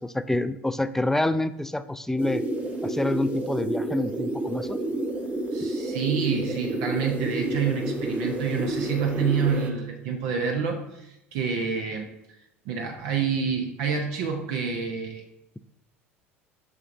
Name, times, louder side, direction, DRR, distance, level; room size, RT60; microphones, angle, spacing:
voice 1, 0.0-2.4 2.8-4.8, left 1 dB, 5° left, 13 dB, 0.3 m, -27 dB
sound 1, 2.2-9.7, right 1 dB, 20° right, 0.9 m, -30 dB
voice 2, 5.5-12.1 12.7-15.2, right 6 dB, 65° right, 2 dB, 0.7 m, -28 dB
6.2 x 5.8 x 2.6 m, 0.86 s
hypercardioid pair, 75°, 7 cm